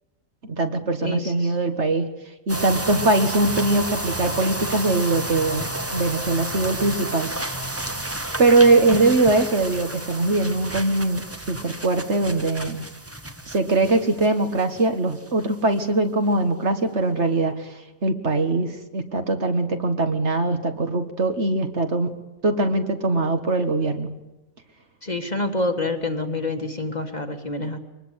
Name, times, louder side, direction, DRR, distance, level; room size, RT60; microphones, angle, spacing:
voice 1, 0.4-2.1 2.5-5.7 5.9-7.3 8.4-12.8 13.5-17.7 18.0-22.2 22.4-24.1, right 2 dB, 55° right, 6 dB, 1.9 m, -21 dB
voice 2, 1.0-1.3 25.0-27.8, left 2 dB, 30° left, 5 dB, 1.7 m, -27 dB
sound 1, 2.5-14.8 15.1-15.4 15.8-15.9, right 1 dB, 10° right, 1.0 m, -31 dB
23.5 x 20.0 x 8.2 m, 1.0 s
omnidirectional pair, 1.5 m